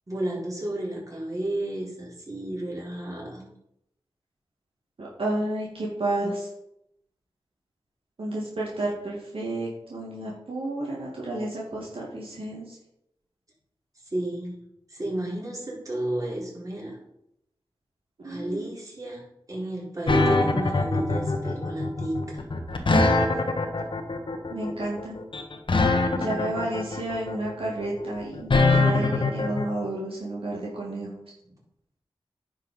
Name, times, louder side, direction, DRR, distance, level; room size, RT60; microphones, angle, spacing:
voice 1, 0.1-3.4 14.1-14.6 14.9-17.0 18.2-22.4, right 1 dB, 35° right, -4 dB, 4.2 m, -32 dB
voice 2, 5.0-6.5 8.2-12.8 18.2-18.7 24.5-25.2 26.1-31.1, right 1 dB, 75° right, -4 dB, 2.6 m, -31 dB
sound 1, 20.1-29.6, left 3 dB, 60° left, 1.3 m, -23 dB
10.0 x 5.5 x 5.3 m, 0.78 s
cardioid pair, 50°, 9 cm